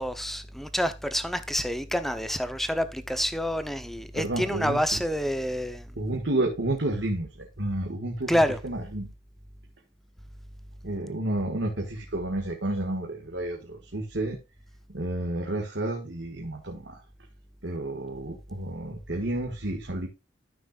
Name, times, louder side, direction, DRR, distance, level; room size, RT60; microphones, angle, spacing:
voice 1, 0.0-5.9 8.3-8.6, equal, ahead, 0.7 m, -28 dB
voice 2, 4.1-5.0 6.0-9.1 10.8-14.4 14.9-17.0 17.6-20.1, right 1 dB, 70° right, 1.7 m, -31 dB
13.5 x 6.0 x 2.4 m
head